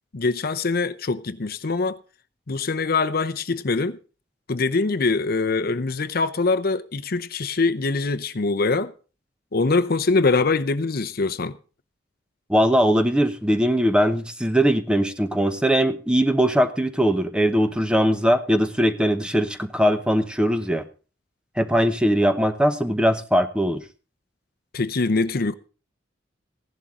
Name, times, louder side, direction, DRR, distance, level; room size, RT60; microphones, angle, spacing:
voice 1, 0.1-2.0 2.5-4.0 4.5-8.9 9.5-11.5 24.7-25.5, left 3 dB, 55° left, 0.7 m, -23 dB
voice 2, 12.5-20.8 21.6-23.8, equal, 5° right, 0.8 m, -20 dB
15.5 x 11.5 x 3.7 m
head